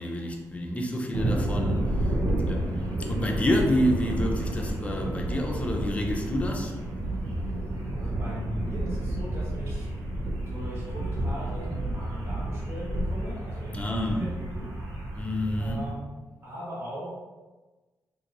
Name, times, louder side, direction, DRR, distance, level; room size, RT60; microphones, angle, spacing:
voice 1, 0.0-2.1 2.5-6.7 13.7-14.3 15.2-15.9, left 1 dB, 20° left, 1 dB, 0.6 m, -28 dB
sound 1, 1.1-15.9, right 1 dB, 70° right, 0.8 m, -30 dB
voice 2, 8.0-9.9 10.5-14.7 15.6-16.1 16.4-17.1, equal, 35° right, -7 dB, 1.3 m, -38 dB
2.9 x 2.6 x 3.9 m, 1.2 s
cardioid pair, 100°, 7 cm